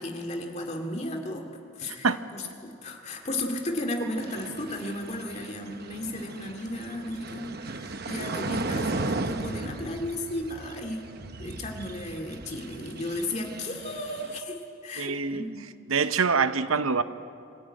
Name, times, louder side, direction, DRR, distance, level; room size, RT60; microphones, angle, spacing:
voice 1, 0.0-2.1 2.3-11.1 11.4-15.5, left 1 dB, 35° left, 3 dB, 2.3 m, -34 dB
sound 1, 4.2-14.4, right 2 dB, 50° right, 0.9 m, -36 dB
voice 2, 15.0-15.4 15.9-17.0, right 5 dB, 85° right, 12 dB, 0.8 m, -25 dB
24.0 x 14.5 x 9.1 m, 2.6 s
head